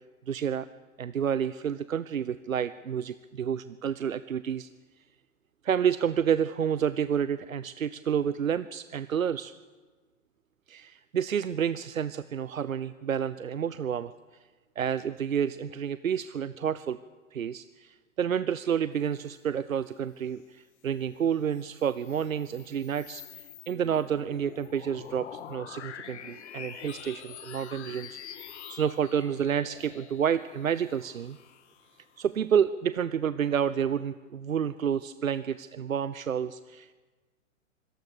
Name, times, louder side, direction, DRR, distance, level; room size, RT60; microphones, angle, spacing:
voice 1, 0.3-0.7 1.0-4.7 5.6-9.5 10.7-14.1 14.8-17.0 17.3-31.4 32.2-36.9, right 8 dB, 85° right, 15 dB, 0.8 m, -29 dB
sound 1, 21.3-32.3, left 9 dB, 55° left, 2.3 m, -46 dB
25.0 x 18.0 x 6.8 m, 1.3 s
figure-of-eight pair, 110°, 40 cm